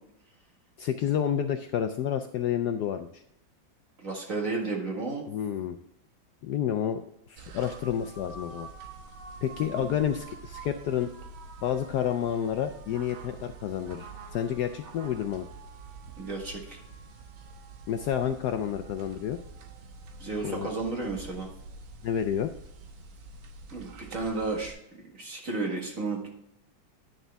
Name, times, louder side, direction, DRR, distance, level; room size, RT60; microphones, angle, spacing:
voice 1, 0.8-3.2 5.3-5.8 6.4-7.0 7.3-8.7 9.4-11.1 11.6-15.5 17.9-19.4 20.4-20.7 22.0-22.5, left 9 dB, 70° left, 7 dB, 1.0 m, -29 dB
voice 2, 4.0-5.3 9.8-9.9 16.2-16.8 20.2-21.5 23.7-24.7 25.2-26.3, right 3 dB, 45° right, 0 dB, 2.1 m, -32 dB
sound 1, 7.4-24.7, right 4 dB, 90° right, 1.8 m, -46 dB
10.0 x 6.6 x 3.4 m, 0.79 s
omnidirectional pair, 2.1 m